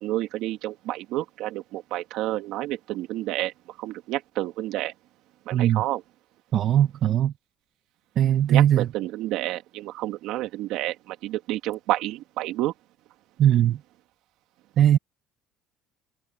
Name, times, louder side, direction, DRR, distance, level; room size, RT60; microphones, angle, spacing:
voice 1, 0.0-3.5 3.8-4.9 5.5-6.0 8.5-12.7, right 15 dB, 70° right, 2.6 m, -29 dB
voice 2, 5.5-5.8 6.5-7.3 8.2-8.9 13.4-13.8 14.8-15.0, right 11 dB, 45° right, 1.1 m, -19 dB
cardioid pair, 145°, 0 cm